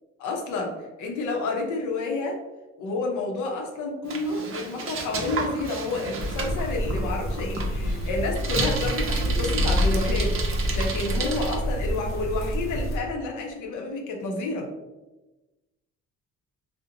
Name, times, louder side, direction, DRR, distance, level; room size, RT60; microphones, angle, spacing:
voice 1, 0.2-2.4 2.8-14.7, left 2 dB, 85° left, 1 dB, 0.6 m, -30 dB
Bicycle, 4.0-11.6, right 4 dB, 45° right, 0.5 m, -33 dB
sound 1, 6.2-13.0, equal, 45° left, 0.6 m, -27 dB
2.8 x 2.0 x 2.5 m, 1.1 s
cardioid pair, 90°, 30 cm